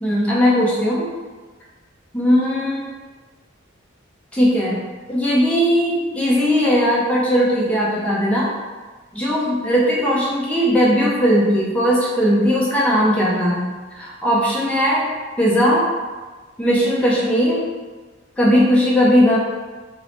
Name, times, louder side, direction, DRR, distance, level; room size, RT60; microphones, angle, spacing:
voice 1, 0.0-1.1 2.1-2.9 4.3-4.8 5.1-8.5 9.1-13.7 14.0-15.1 15.4-15.9 16.6-17.7 18.4-19.4, equal, 5° left, -6 dB, 0.6 m, -18 dB
4.2 x 2.1 x 2.8 m, 1.3 s
head